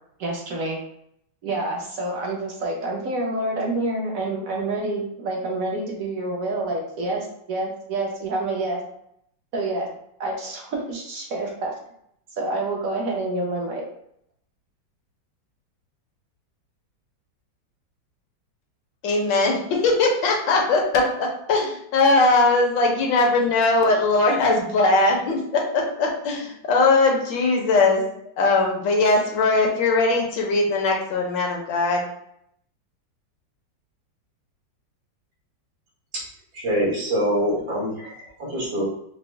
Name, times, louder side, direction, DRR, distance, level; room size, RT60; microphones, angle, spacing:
voice 1, 0.2-0.8 1.4-8.8 9.5-9.9 10.2-11.7 12.4-13.9, right 2 dB, 55° right, 0 dB, 1.0 m, -27 dB
voice 2, 19.0-28.0 28.4-32.0, left 3 dB, 75° left, 0 dB, 1.5 m, -20 dB
voice 3, 36.5-38.8, equal, 90° right, -6 dB, 2.3 m, -25 dB
5.0 x 2.0 x 3.3 m, 0.72 s
omnidirectional pair, 2.0 m